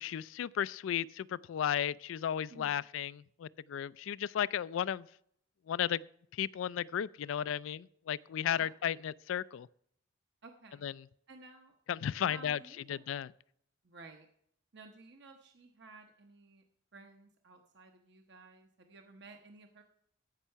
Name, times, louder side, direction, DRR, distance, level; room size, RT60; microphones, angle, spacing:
voice 1, 0.0-5.1 5.7-6.0 6.3-9.7 10.8-10.9 11.9-12.6 12.9-13.3, left 9 dB, 75° left, 0.3 m, -34 dB
voice 2, 2.5-2.8 8.5-8.7 10.4-10.9 11.3-11.8 12.2-13.0 13.8-14.3 14.7-16.6 16.9-19.8, right 2 dB, 60° right, 0.9 m, -54 dB
14.5 x 5.5 x 5.6 m
head